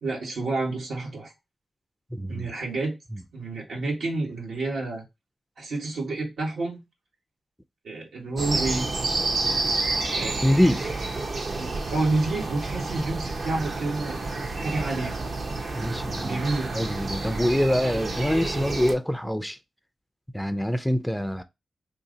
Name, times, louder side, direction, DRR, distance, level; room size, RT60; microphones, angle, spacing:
voice 1, 0.0-1.3 2.3-2.9 3.3-5.0 5.6-6.8 7.8-8.9 10.1-10.4 11.6-15.1 16.2-16.7, right 2 dB, 85° right, 1.4 m, -29 dB
voice 2, 2.1-2.5 10.4-10.9 15.7-16.4 16.7-19.6 20.3-21.4, equal, 5° left, 0.4 m, -25 dB
sound 1, 8.4-19.0, right 3 dB, 55° right, 0.6 m, -29 dB
2.7 x 2.7 x 3.9 m
cardioid pair, 90°, 0 cm